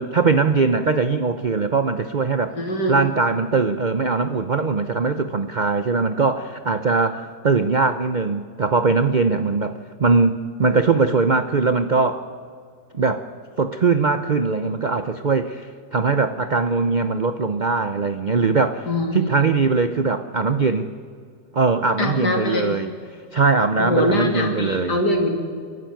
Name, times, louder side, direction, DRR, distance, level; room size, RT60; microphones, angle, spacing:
voice 1, 0.0-2.6 2.9-12.3 12.9-13.3 13.6-18.9 19.1-20.9 21.5-22.9 23.3-25.0, right 4 dB, 60° right, 9 dB, 0.4 m, -21 dB
voice 2, 2.5-3.0 18.9-19.3 22.0-22.8 23.8-25.3, left 1 dB, 65° left, 3 dB, 3.4 m, -23 dB
29.5 x 12.0 x 9.3 m, 2.2 s
omnidirectional pair, 1.9 m